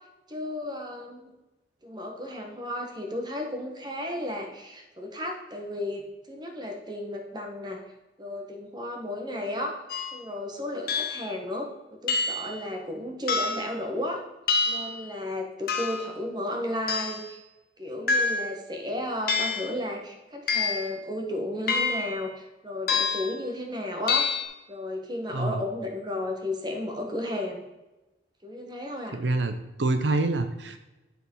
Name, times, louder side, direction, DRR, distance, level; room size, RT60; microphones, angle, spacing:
voice 1, 0.3-1.2 1.8-7.8 8.2-9.8 10.1-14.2 14.6-17.4 17.8-22.3 22.6-24.3 24.7-27.6 28.4-29.2, left 1 dB, 25° right, 2 dB, 1.5 m, -33 dB
sound 1, 9.9-10.1 10.9-11.3 12.1-12.5 13.3-13.7 14.5-15.0 15.7-16.1 16.9-17.3 18.1-18.6 19.3-19.7 20.5-20.9 21.7-22.2 22.9-23.3 24.1-24.4, left 4 dB, 55° left, 1.3 m, -27 dB
voice 2, 25.3-25.6 29.1-30.8, right 2 dB, 80° right, 8 dB, 0.7 m, -26 dB
11.5 x 5.0 x 5.6 m, 1.0 s
head